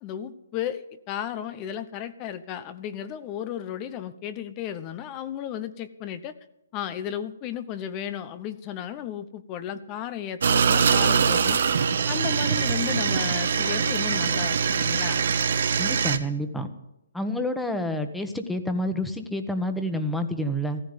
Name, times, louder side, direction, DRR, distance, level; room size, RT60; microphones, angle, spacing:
voice 1, 0.0-6.3 6.7-11.6 12.1-15.3, left 10 dB, 25° left, 12 dB, 1.0 m, -34 dB
sound 1, 10.4-16.2, right 6 dB, 65° right, 1.5 m, -23 dB
voice 2, 15.8-16.7 17.1-20.8, equal, 5° left, 7 dB, 1.5 m, -28 dB
15.5 x 14.5 x 5.3 m, 0.86 s
hypercardioid pair, 145°, 0 cm